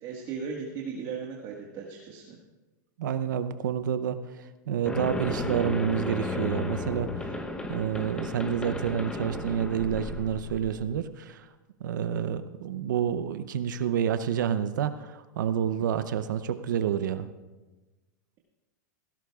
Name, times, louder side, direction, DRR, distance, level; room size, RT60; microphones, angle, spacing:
voice 1, 0.0-2.4, right 5 dB, 40° right, -1 dB, 1.6 m, -37 dB
voice 2, 3.0-4.2 4.7-7.1 7.7-11.4 11.8-17.3, right 8 dB, 80° right, 11 dB, 0.7 m, -28 dB
sound 1, 4.9-10.9, left 2 dB, 10° left, 0.9 m, -34 dB
17.0 x 16.5 x 2.4 m, 1.2 s
hypercardioid pair, 130°, 10 cm